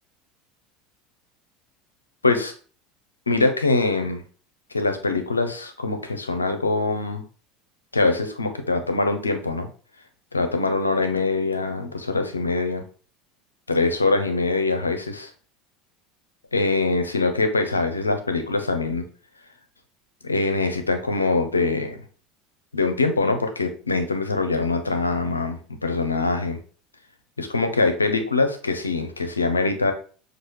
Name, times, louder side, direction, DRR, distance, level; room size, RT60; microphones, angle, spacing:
voice 1, 2.2-2.5 3.3-4.2 4.7-7.2 7.9-9.7 10.3-12.8 13.7-15.3 16.5-19.1 20.2-22.0 22.7-26.6 27.4-29.9, left 3 dB, 90° left, 7 dB, 0.6 m, -23 dB
6.1 x 2.4 x 3.1 m, 0.40 s
figure-of-eight pair, 75°, 0 cm